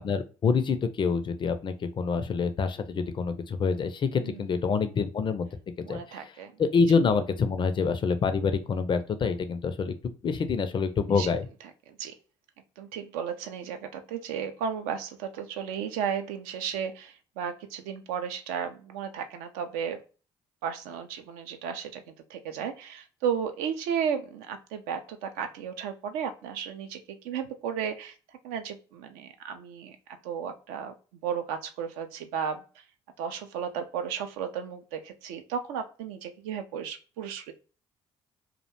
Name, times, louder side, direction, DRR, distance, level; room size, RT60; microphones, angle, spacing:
voice 1, 0.0-5.5 5.9-6.2 6.6-11.5, left 5 dB, 30° left, 10 dB, 0.4 m, -26 dB
voice 2, 5.8-6.5 6.9-7.0 11.2-11.3 11.9-12.1 12.8-20.0 20.6-28.1 28.4-30.0 30.2-30.9 31.2-32.6 33.2-37.5, right 7 dB, 65° right, 7 dB, 0.4 m, -34 dB
2.4 x 2.1 x 2.8 m, 0.35 s
figure-of-eight pair, 50°, 15 cm